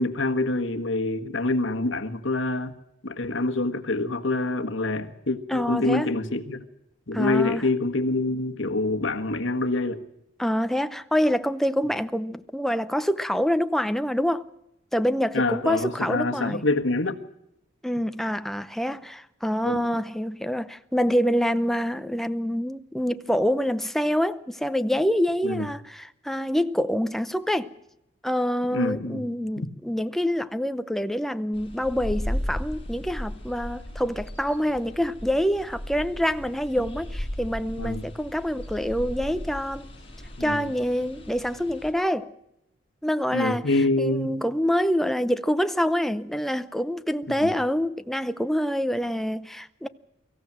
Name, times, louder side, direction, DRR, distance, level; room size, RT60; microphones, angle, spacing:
voice 1, 0.0-2.7 3.0-6.6 7.1-10.0 15.3-17.2 19.6-19.8 25.4-25.7 28.7-29.2 29.6-29.7 37.8-38.1 40.4-40.7 43.3-44.3 47.4-47.5, left 2 dB, 70° left, 1.6 m, -26 dB
voice 2, 5.5-6.1 7.1-7.6 10.4-14.5 14.9-16.6 17.8-27.7 28.2-39.9 40.4-42.3 43.0-43.7 44.0-49.9, equal, ahead, 0.7 m, -26 dB
sound 1, 31.5-41.9, equal, 25° left, 6.1 m, -36 dB
24.5 x 15.0 x 7.5 m
head